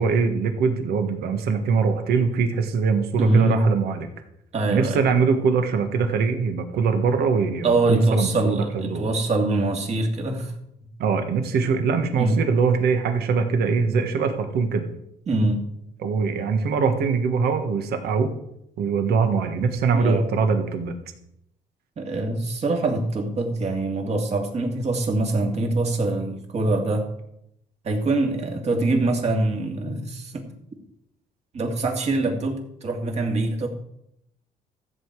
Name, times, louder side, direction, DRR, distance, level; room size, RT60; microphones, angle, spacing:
voice 1, 0.0-4.1 4.7-9.1 11.0-14.9 16.0-18.3 18.8-20.9, right 5 dB, 70° right, 6 dB, 1.6 m, -22 dB
voice 2, 3.2-3.6 4.5-5.0 7.6-10.5 12.2-12.4 15.3-15.6 19.9-20.2 22.0-27.1 27.8-30.5 31.5-33.7, right 2 dB, 40° right, 2 dB, 2.4 m, -24 dB
14.0 x 8.0 x 4.8 m, 0.79 s
cardioid pair, 110°, 17 cm